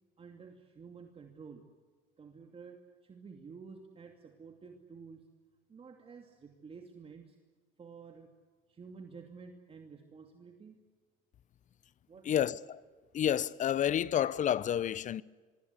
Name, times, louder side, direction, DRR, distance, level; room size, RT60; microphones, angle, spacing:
voice 1, 0.2-1.6 2.2-5.3 5.7-7.4 7.8-8.3 8.7-10.8 12.1-12.6, right 5 dB, 30° right, 2.6 m, -51 dB
voice 2, 12.3-12.8 13.1-15.2, left 10 dB, 40° left, 0.8 m, -30 dB
24.5 x 23.5 x 8.2 m
supercardioid pair, 105°, 19 cm